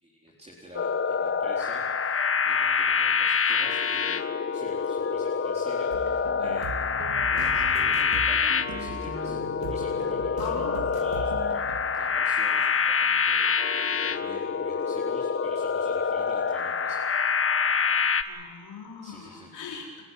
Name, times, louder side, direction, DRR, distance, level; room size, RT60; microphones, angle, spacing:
voice 1, 0.0-6.8 7.3-9.4 9.7-17.6 19.0-19.9, right 1 dB, 20° right, -4 dB, 4.1 m, -47 dB
sound 1, 0.7-18.2, left 6 dB, 35° left, 1.3 m, -26 dB
sound 2, 5.9-11.8, right 4 dB, 90° right, 2.5 m, -38 dB
voice 2, 10.4-10.9 18.2-20.0, left 5 dB, 90° left, -1 dB, 5.0 m, -39 dB
29.5 x 12.5 x 9.7 m, 1.5 s
cardioid pair, 85°, 36 cm